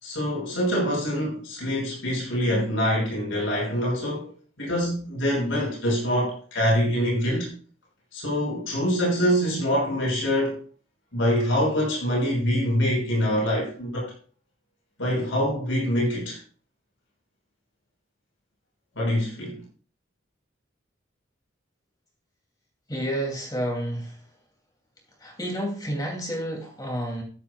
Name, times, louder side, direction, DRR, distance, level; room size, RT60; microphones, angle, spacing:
voice 1, 0.0-4.3 4.6-7.5 8.1-10.6 11.1-14.1 15.0-16.4 19.0-19.6, equal, 85° left, 6.0 m, -25 dB
voice 2, 22.9-24.2 25.2-27.2, equal, 20° left, 2.8 m, -30 dB
13.5 x 11.0 x 2.4 m
head